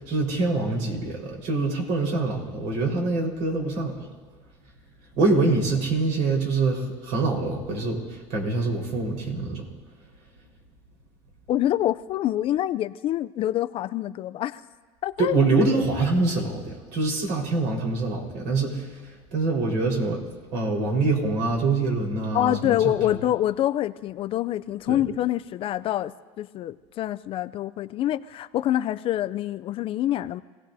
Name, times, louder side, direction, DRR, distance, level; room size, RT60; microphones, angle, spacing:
voice 1, 0.0-4.1 5.2-9.7 15.2-20.2 20.5-23.1 24.9-25.0, right 3 dB, 60° right, 0 dB, 4.3 m, -25 dB
voice 2, 11.5-14.6 15.0-15.4 22.3-30.4, left 13 dB, 35° left, 13 dB, 0.4 m, -26 dB
27.0 x 17.0 x 2.7 m, 1.4 s
supercardioid pair, 130°, 15 cm